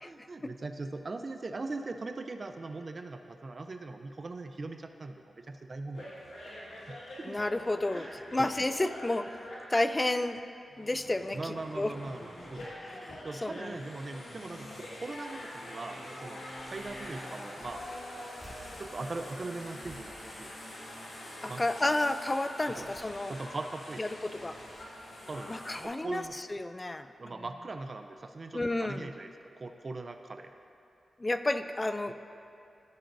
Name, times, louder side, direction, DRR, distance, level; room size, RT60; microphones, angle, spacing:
voice 1, 0.1-6.1 6.9-7.4 7.9-8.1 8.4-8.5 11.3-12.7 13.2-17.8 18.8-20.5 21.5-21.6 22.7-22.9 23.3-24.0 25.3-25.5 25.8-26.3 27.2-30.5 32.1-32.2, right 3 dB, 45° right, 6 dB, 0.4 m, -40 dB
sound 1, 5.9-10.3 10.7-25.9, left 1 dB, 85° left, 1.7 m, -45 dB
voice 2, 7.2-10.4 10.8-11.9 12.8-13.8 21.4-23.4 24.0-24.6 25.5-27.1 28.5-29.1 31.2-32.1, left 2 dB, 25° left, 10 dB, 0.3 m, -31 dB
sound 2, 16.8-17.1 17.6-21.2 21.6-21.9 22.4-23.7 24.2-25.2 25.8-26.0 26.2-26.3, equal, 15° right, 1.7 m, -57 dB
14.5 x 5.2 x 2.6 m, 2.5 s
cardioid pair, 70°, 0 cm